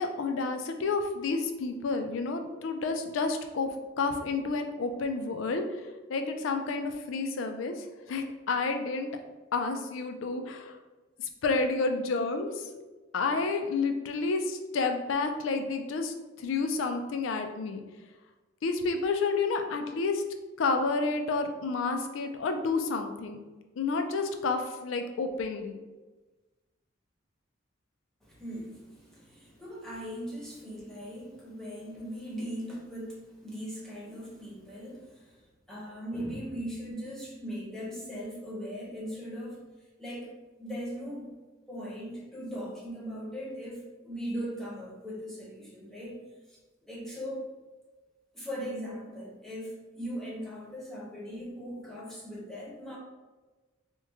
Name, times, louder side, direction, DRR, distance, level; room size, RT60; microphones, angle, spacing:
voice 1, 0.0-9.1 9.5-10.8 11.2-12.8 13.1-17.8 18.6-20.2 20.6-23.4 23.8-25.8, left 3 dB, 75° left, 6 dB, 0.4 m, -30 dB
voice 2, 28.2-39.6 40.0-40.3 40.6-41.4 41.7-46.2 46.5-47.4 48.3-53.0, equal, ahead, -5 dB, 0.7 m, -39 dB
3.0 x 2.2 x 3.5 m, 1.2 s
head